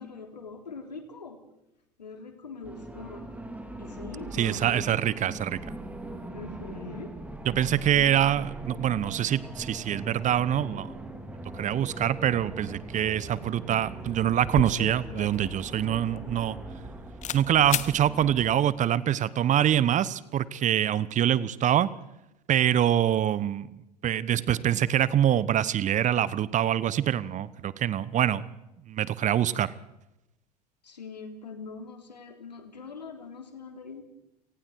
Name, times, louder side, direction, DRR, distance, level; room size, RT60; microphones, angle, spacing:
voice 1, 0.0-1.4 2.0-3.3 3.8-4.9 6.3-7.1 30.8-34.0, left 4 dB, 85° left, 5 dB, 3.3 m, -42 dB
sound 1, 2.6-18.6, right 1 dB, 5° right, 4.0 m, -41 dB
voice 2, 4.3-5.6 7.5-10.9 11.6-16.6 17.3-21.9 22.5-23.7 24.0-28.5 28.9-29.7, right 10 dB, 35° right, 18 dB, 1.1 m, -25 dB
sound 2, 13.8-14.0 14.2-16.9 17.2-17.4 17.7-17.9, left 10 dB, 35° left, 1.1 m, -34 dB
29.5 x 19.0 x 4.7 m, 0.89 s
figure-of-eight pair, 70°, 21 cm